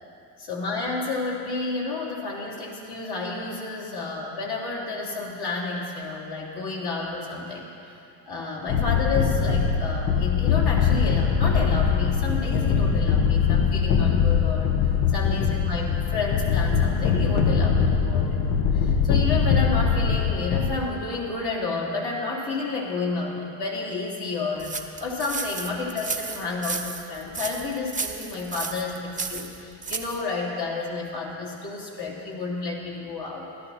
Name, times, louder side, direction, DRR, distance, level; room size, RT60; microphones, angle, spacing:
voice 1, 0.4-7.7 8.3-14.8 15.1-33.5, left 3 dB, 50° left, -3 dB, 3.4 m, -31 dB
sound 1, 8.7-20.7, left 6 dB, 70° left, 1.3 m, -22 dB
sound 2, 24.6-30.2, right 4 dB, 15° right, 0.9 m, -33 dB
17.0 x 12.5 x 4.3 m, 2.6 s
supercardioid pair, 90°, 48 cm